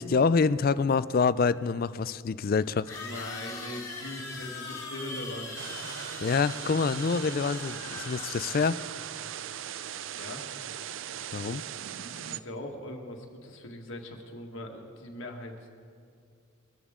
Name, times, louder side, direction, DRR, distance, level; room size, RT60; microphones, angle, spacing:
voice 1, 0.0-2.9 6.2-8.8 11.3-11.6, left 5 dB, 45° left, 16 dB, 0.3 m, -26 dB
sound 1, 2.9-9.0, left 3 dB, 15° left, 2.7 m, -41 dB
voice 2, 3.0-5.7 10.2-10.5 11.9-15.5, left 1 dB, 65° left, 2 dB, 1.7 m, -41 dB
sound 2, 5.6-12.4, right 10 dB, 65° right, 0.4 m, -39 dB
22.0 x 14.0 x 3.7 m, 2.4 s
head